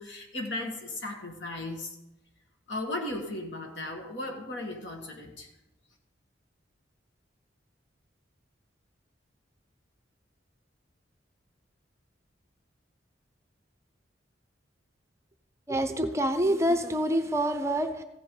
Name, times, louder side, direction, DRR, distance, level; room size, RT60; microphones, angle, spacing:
voice 1, 0.0-2.0 2.7-5.5, left 2 dB, 65° left, 3 dB, 1.7 m, -36 dB
voice 2, 15.7-18.0, right 1 dB, 15° right, 8 dB, 0.6 m, -26 dB
15.0 x 7.9 x 3.8 m, 0.91 s
head